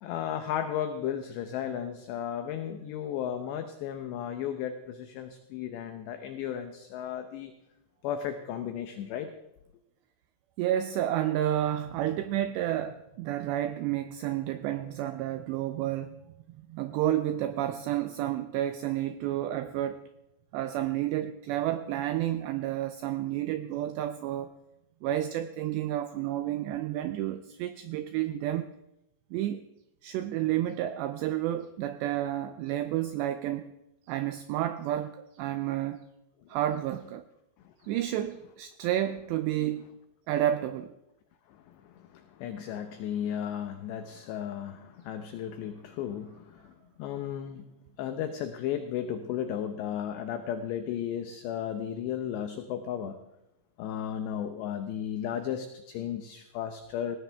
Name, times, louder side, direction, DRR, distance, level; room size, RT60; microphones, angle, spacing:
voice 1, 0.0-7.5 8.0-9.3 37.6-37.7 41.5-46.7 47.0-47.6 48.0-53.2 53.8-57.2, left 9 dB, 75° left, 7 dB, 2.7 m, -34 dB
voice 2, 10.6-16.2 16.7-20.0 20.5-24.5 25.0-28.7 29.3-29.6 30.0-33.7 34.1-36.0 36.5-37.2 37.8-39.9 40.3-40.9, right 12 dB, 90° right, 10 dB, 2.4 m, -30 dB
19.0 x 18.0 x 3.5 m, 0.90 s
omnidirectional pair, 5.7 m